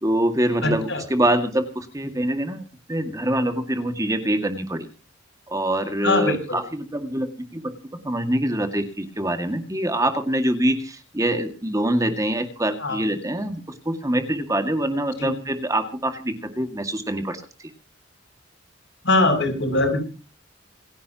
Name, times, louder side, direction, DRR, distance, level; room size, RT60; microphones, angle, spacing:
voice 1, 0.0-2.6 2.9-4.9 5.5-7.7 8.0-17.4, right 1 dB, 15° right, 6 dB, 2.0 m, -24 dB
voice 2, 0.6-1.0 6.0-6.6 12.8-13.0 15.2-15.3 19.0-20.0, left 2 dB, 70° left, 4 dB, 7.2 m, -21 dB
27.5 x 11.0 x 3.0 m, 0.35 s
head